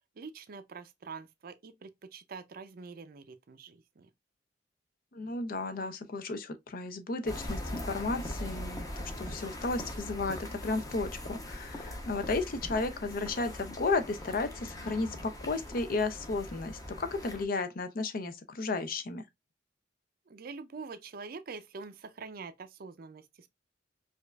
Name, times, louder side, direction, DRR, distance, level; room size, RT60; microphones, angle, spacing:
voice 1, 0.2-4.1 20.3-23.5, right 4 dB, 55° right, 0.5 m, -45 dB
voice 2, 5.1-19.2, left 3 dB, 55° left, 0.5 m, -33 dB
sound 1, 7.3-17.4, left 1 dB, 20° left, 0.7 m, -41 dB
5.0 x 2.4 x 2.2 m
head